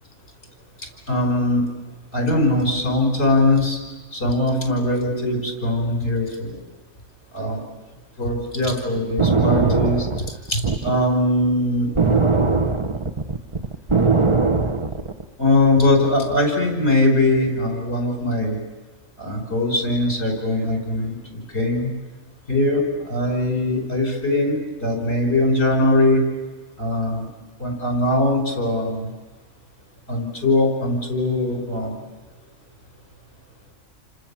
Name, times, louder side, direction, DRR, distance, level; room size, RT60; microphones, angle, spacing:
voice 1, 0.8-1.6 2.1-3.8 4.1-6.6 7.3-7.6 8.2-10.1 10.5-11.9 15.4-18.6 19.2-21.9 22.5-26.2 26.8-27.3 27.6-29.1 30.1-32.0, left 1 dB, 60° left, 2 dB, 5.9 m, -21 dB
sound 1, 9.0-11.0 12.0-15.2, right 4 dB, 25° right, 0.9 m, -20 dB
29.0 x 26.0 x 7.3 m, 1.3 s
omnidirectional pair, 1.3 m